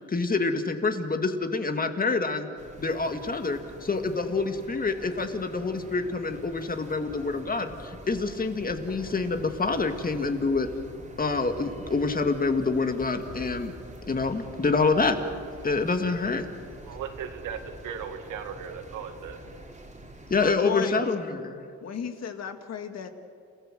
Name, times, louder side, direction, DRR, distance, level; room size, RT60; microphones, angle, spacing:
voice 1, 0.1-2.5 2.8-10.7 11.2-13.7 14.1-15.2 15.6-16.5 20.3-21.7, left 4 dB, 30° left, 6 dB, 2.1 m, -27 dB
sound 1, 2.6-20.5, right 1 dB, 25° right, 3.4 m, -45 dB
voice 2, 16.9-19.4, right 7 dB, 85° right, 6 dB, 2.1 m, -37 dB
voice 3, 20.4-21.1 21.8-23.1, left 8 dB, 60° left, 7 dB, 2.0 m, -33 dB
30.0 x 15.5 x 7.7 m, 2.4 s
cardioid pair, 90°, 30 cm